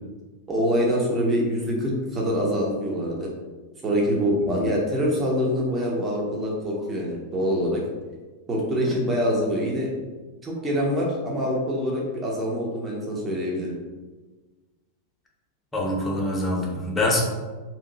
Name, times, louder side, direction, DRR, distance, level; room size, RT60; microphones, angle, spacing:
voice 1, 0.5-3.3 3.8-7.8 8.5-9.9 10.4-13.8, equal, 20° right, -3 dB, 0.8 m, -25 dB
voice 2, 15.7-17.2, left 1 dB, 10° left, -3 dB, 0.8 m, -25 dB
2.8 x 2.5 x 3.8 m, 1.3 s
figure-of-eight pair, 90°, 0 cm